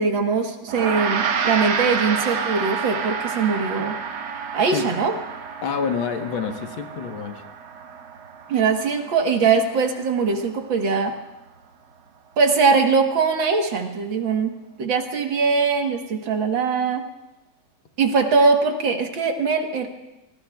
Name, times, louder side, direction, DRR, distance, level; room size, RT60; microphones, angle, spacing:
voice 1, 0.0-4.0 4.5-5.1 8.5-11.1 12.4-14.5 14.8-17.0 18.0-19.9, right 4 dB, 70° right, 4 dB, 2.1 m, -21 dB
Gong, 0.7-10.2, right 6 dB, 90° right, 2.0 m, -29 dB
voice 2, 5.6-7.4, left 6 dB, 80° left, 4 dB, 2.0 m, -27 dB
27.5 x 19.5 x 2.3 m, 0.99 s
omnidirectional pair, 2.2 m